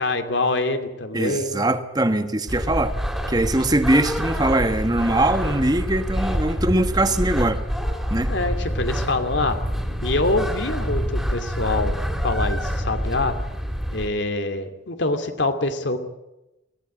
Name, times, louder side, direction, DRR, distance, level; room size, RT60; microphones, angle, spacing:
voice 1, 0.0-1.7 8.3-9.6 10.0-12.0 12.2-13.3 13.9-16.0, left 2 dB, 80° left, 7 dB, 2.5 m, -25 dB
voice 2, 1.1-2.9 3.3-7.6 8.1-8.3, right 1 dB, 20° right, 9 dB, 1.3 m, -21 dB
sound 1, 2.5-14.1, equal, ahead, 2.8 m, -26 dB
21.5 x 17.0 x 8.6 m, 0.95 s
head